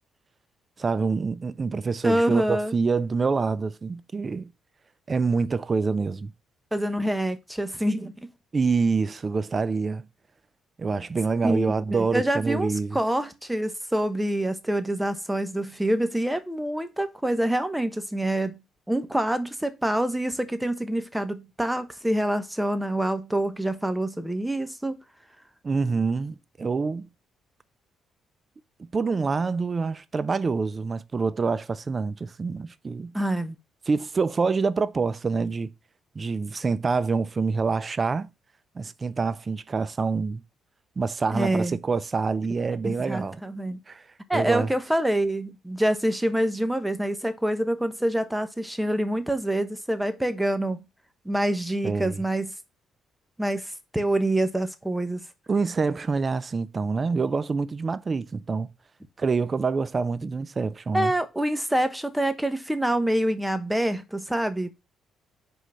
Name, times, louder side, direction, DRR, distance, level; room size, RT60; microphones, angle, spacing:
voice 1, 0.8-4.5 5.1-6.3 8.5-10.1 10.8-13.0 25.6-27.1 28.9-33.1 33.9-35.7 36.2-38.3 38.8-40.4 41.0-43.4 43.9-44.0 44.3-44.7 51.8-52.2 55.5-58.7 59.2-61.1, right 4 dB, 35° right, 0.5 m, -26 dB
voice 2, 2.0-2.8 6.7-8.3 11.4-18.6 18.9-25.0 33.1-33.6 41.3-41.8 42.8-43.8 44.3-50.9 51.2-52.5 53.4-55.2 60.9-64.7, right 1 dB, 5° right, 1.0 m, -26 dB
5.1 x 3.9 x 5.5 m
supercardioid pair, 75°, 0 cm